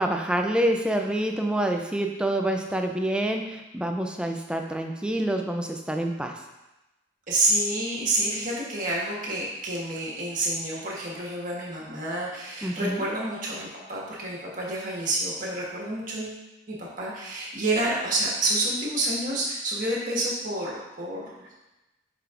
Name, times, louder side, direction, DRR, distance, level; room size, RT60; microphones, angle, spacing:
voice 1, 0.0-6.4 12.6-13.1, right 1 dB, 5° right, 3 dB, 0.4 m, -27 dB
voice 2, 7.3-21.3, right 2 dB, 40° right, -4 dB, 1.4 m, -28 dB
7.8 x 5.0 x 2.4 m, 1.0 s
head